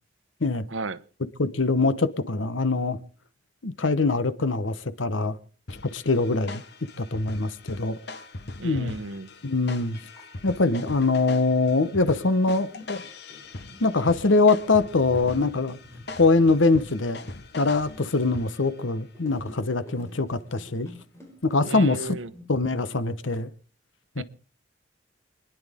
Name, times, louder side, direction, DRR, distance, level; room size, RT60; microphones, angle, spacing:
voice 1, 0.7-1.0 8.6-9.3 21.6-22.3 24.2-24.3, right 3 dB, 85° right, 0.9 m, -34 dB
voice 2, 1.4-3.0 3.6-5.4 5.8-6.6 7.0-8.0 8.6-9.0 9.4-10.0 10.4-13.0 13.8-15.8 16.2-17.2 17.6-20.9 21.4-22.0 22.5-23.5 24.2-24.3, left 3 dB, 85° left, 1.1 m, -23 dB
sound 1, 5.7-18.8, left 2 dB, 60° left, 1.2 m, -41 dB
sound 2, 9.6-9.7 10.0-10.9 11.6-22.4, left 1 dB, 15° left, 4.7 m, -48 dB
28.5 x 10.5 x 3.6 m
head